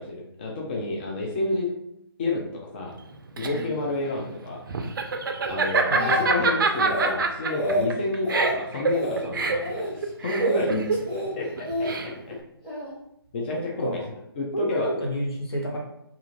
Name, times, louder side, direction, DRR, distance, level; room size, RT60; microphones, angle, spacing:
voice 1, 0.0-1.7 2.2-2.9 3.4-4.6 5.5-11.0 11.4-12.4 13.3-14.0 14.4-14.9, left 2 dB, 25° left, -2 dB, 0.4 m, -30 dB
Laughter, 3.0-12.4, right 4 dB, 55° right, 0.4 m, -26 dB
Speech, 5.4-6.4 6.7-7.1 7.5-7.9 8.2-8.5 8.9-9.2 9.6-9.9 10.3-10.7 11.1-11.9 12.6-12.9, left 1 dB, ahead, 0.9 m, -29 dB
voice 2, 5.9-6.4 13.5-14.1 14.5-15.8, right 1 dB, 70° left, -2 dB, 1.0 m, -31 dB
2.5 x 2.4 x 2.8 m, 0.78 s
figure-of-eight pair, 145°, 13 cm